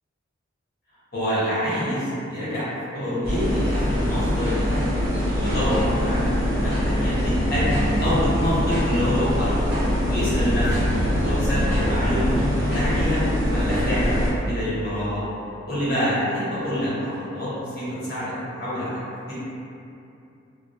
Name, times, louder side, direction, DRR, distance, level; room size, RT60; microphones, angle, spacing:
voice 1, 1.1-2.6 2.9-4.9 5.3-9.6 10.0-10.8 11.1-13.2 13.5-15.2 15.7-19.0 19.3-19.4, equal, 45° left, -11 dB, 0.9 m, -26 dB
sound 1, 3.2-14.3, equal, 50° right, 0.8 m, -23 dB
2.2 x 2.1 x 2.7 m, 2.7 s
head